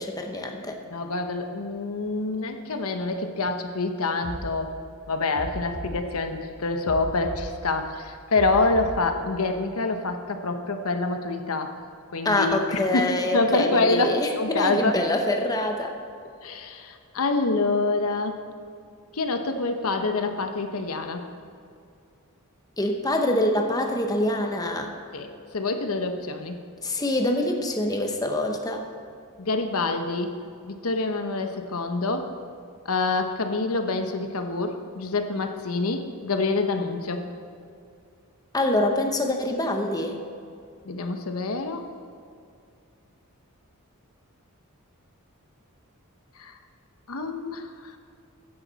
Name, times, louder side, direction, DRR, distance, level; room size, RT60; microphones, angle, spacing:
voice 1, 0.0-0.8 12.2-15.9 22.8-24.9 26.8-28.8 38.5-40.2, left 1 dB, 15° left, 3 dB, 0.9 m, -25 dB
voice 2, 0.9-4.7 5.1-11.7 12.1-15.0 16.4-18.4 19.1-21.2 25.1-25.3 25.5-26.6 29.4-30.3 30.6-32.3 32.8-37.3 40.8-41.8 46.4-46.5 47.1-47.7, left 3 dB, 75° left, 6 dB, 0.9 m, -26 dB
sound 1, 4.2-4.4 5.3-5.9 6.8-7.4 8.3-8.9, right 1 dB, 55° right, 3.5 m, -36 dB
14.5 x 10.0 x 4.1 m, 2.4 s
head